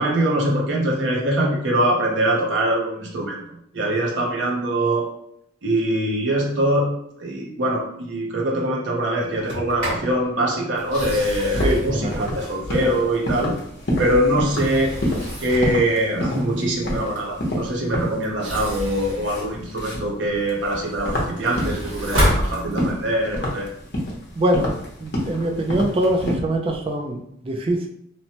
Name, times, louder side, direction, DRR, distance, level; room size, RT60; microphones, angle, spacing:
voice 1, 0.0-3.4 3.7-5.1 5.6-13.5 14.0-14.9 15.4-23.7, right 1 dB, 65° right, -1 dB, 0.7 m, -23 dB
Sliding door, 9.3-10.1 10.8-13.1 13.7-15.8 18.2-20.2 20.6-23.1, equal, 90° right, 1.5 m, -28 dB
sound 1, 10.8-26.3, equal, 55° left, 0.7 m, -30 dB
voice 2, 11.6-12.3 24.4-24.7 25.0-27.9, right 1 dB, 30° right, 3 dB, 0.3 m, -23 dB
3.0 x 2.1 x 2.8 m, 0.72 s
head